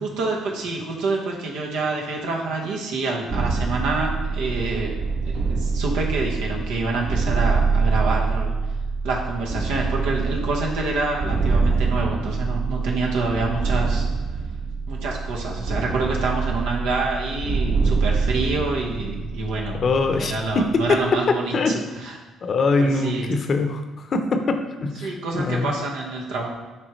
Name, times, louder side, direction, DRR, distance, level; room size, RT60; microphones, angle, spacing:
voice 1, 0.0-5.0 5.2-8.5 9.0-14.1 14.9-19.8 20.1-22.2 22.8-23.3 25.0-26.5, right 3 dB, 90° right, -2 dB, 1.2 m, -27 dB
sound 1, 3.3-21.0, right 4 dB, 65° right, 1.1 m, -25 dB
voice 2, 19.8-21.0 21.5-21.8 22.4-23.8 24.1-25.1 25.3-25.7, left 3 dB, 50° left, 6 dB, 0.7 m, -22 dB
10.0 x 3.6 x 3.1 m, 1.2 s
cardioid pair, 85°, 0 cm